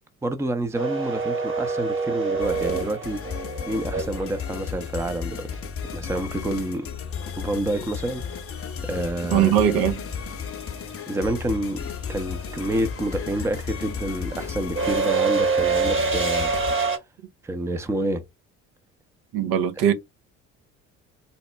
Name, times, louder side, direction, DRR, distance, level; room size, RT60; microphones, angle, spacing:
voice 1, 0.2-3.2 3.7-5.6 5.9-6.9 7.3-8.2 8.8-9.5 11.1-11.8 12.1-16.5 17.4-18.2, right 1 dB, 5° right, 0.6 m, -28 dB
sound 1, 0.7-4.8 7.2-7.3 8.6-8.9 9.2-17.0, right 4 dB, 30° right, 1.3 m, -26 dB
sound 2, 2.4-16.7, left 7 dB, 35° left, 0.7 m, -34 dB
voice 2, 9.3-10.0 19.3-19.9, right 9 dB, 65° right, 0.8 m, -20 dB
4.1 x 2.1 x 3.3 m
hypercardioid pair, 55°, 40 cm